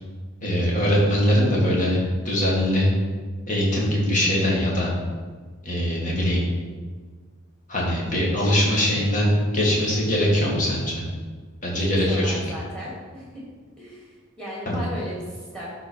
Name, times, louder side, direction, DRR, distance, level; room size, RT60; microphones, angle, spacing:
voice 1, 0.4-2.0 2.2-2.9 3.5-4.9 5.6-6.4 7.7-10.9 11.6-12.4 14.7-14.8, equal, 40° left, -4 dB, 2.2 m, -22 dB
voice 2, 11.8-13.4 13.8-14.1 14.4-15.7, equal, 5° left, -6 dB, 2.7 m, -36 dB
11.5 x 4.1 x 4.6 m, 1.5 s
head